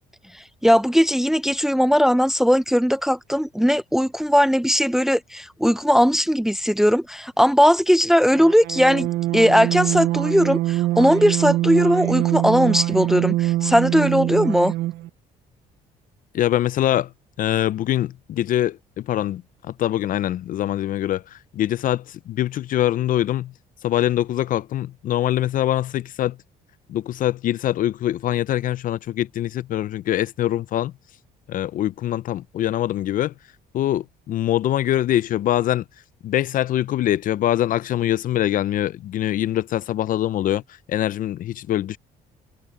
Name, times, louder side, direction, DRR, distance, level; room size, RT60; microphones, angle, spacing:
voice 1, 0.6-14.7, equal, ahead, 0.5 m, -18 dB
sound 1, 8.3-15.1, right 16 dB, 75° right, 0.5 m, -24 dB
voice 2, 16.3-17.1 17.4-19.4 19.8-23.5 23.8-26.4 26.9-30.9 31.5-33.3 33.7-35.8 36.2-40.6 40.9-42.0, left 12 dB, 55° left, 0.5 m, -23 dB
cardioid pair, 110°, 17 cm